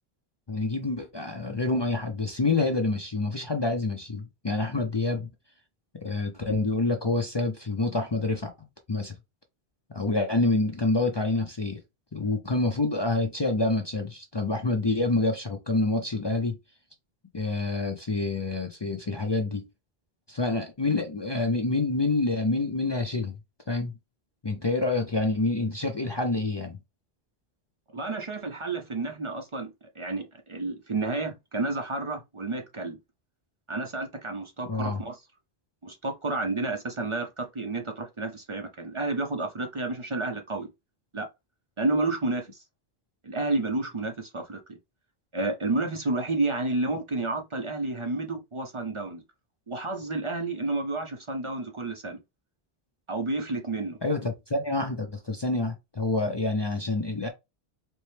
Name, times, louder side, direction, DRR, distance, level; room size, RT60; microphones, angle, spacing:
voice 1, 0.5-5.3 6.0-8.5 8.9-9.1 9.9-11.8 12.1-16.6 17.3-19.6 20.3-23.3 23.7-23.9 24.4-26.8 34.7-35.0 54.0-57.3, left 2 dB, 35° left, 0.4 m, -27 dB
voice 2, 27.9-33.0 33.7-35.2 35.8-40.7 41.1-41.3 41.8-42.6 43.2-44.8 45.3-49.2 49.7-52.2 53.1-54.0, right 2 dB, 40° right, 0.5 m, -30 dB
4.3 x 2.1 x 3.2 m
omnidirectional pair, 1.1 m